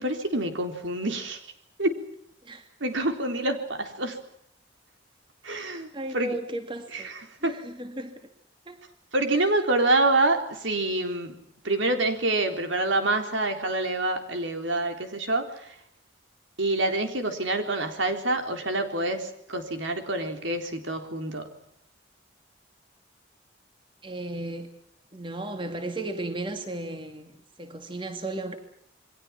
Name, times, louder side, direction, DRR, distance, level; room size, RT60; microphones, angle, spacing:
voice 1, 0.0-1.5 1.8-2.0 2.8-4.2 5.4-6.3 6.9-7.6 9.1-11.4 11.6-15.7 16.6-21.5, right 2 dB, 80° right, 6 dB, 3.9 m, -27 dB
voice 2, 5.5-7.1 7.4-8.2 8.7-8.8 9.3-9.4 24.0-24.7 25.1-28.6, right 1 dB, 25° right, 6 dB, 2.4 m, -35 dB
29.0 x 23.0 x 5.9 m, 0.73 s
head